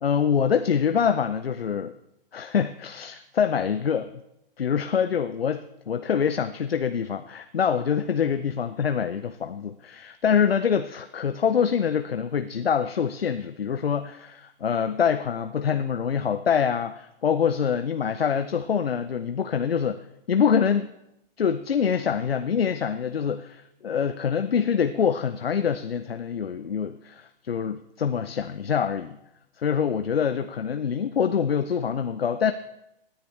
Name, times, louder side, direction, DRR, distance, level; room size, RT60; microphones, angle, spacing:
voice 1, 0.0-1.9 2.3-4.1 4.6-20.0 20.3-20.9 21.4-29.2 29.6-32.5, left 7 dB, 90° left, 10 dB, 0.6 m, -25 dB
17.0 x 10.5 x 3.2 m, 0.83 s
hypercardioid pair, 120°, 29 cm